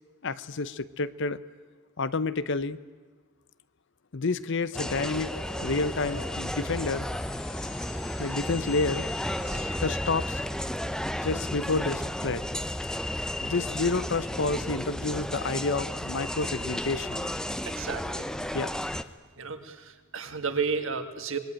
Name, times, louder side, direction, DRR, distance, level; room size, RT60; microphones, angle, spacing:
voice 1, 0.2-1.4 2.0-2.8 4.1-5.3 5.6-7.1 8.2-9.1 9.8-10.4 11.2-12.5 13.4-17.3 18.5-18.7, left 3 dB, 55° left, 16 dB, 0.8 m, -29 dB
sound 1, 4.7-9.8, left 3 dB, 90° left, 4.7 m, -45 dB
sound 2, 4.7-19.0, left 1 dB, 5° left, 0.7 m, -33 dB
voice 2, 17.7-18.3 19.4-21.4, right 5 dB, 60° right, 7 dB, 2.1 m, -33 dB
26.0 x 21.5 x 9.0 m, 1.4 s
head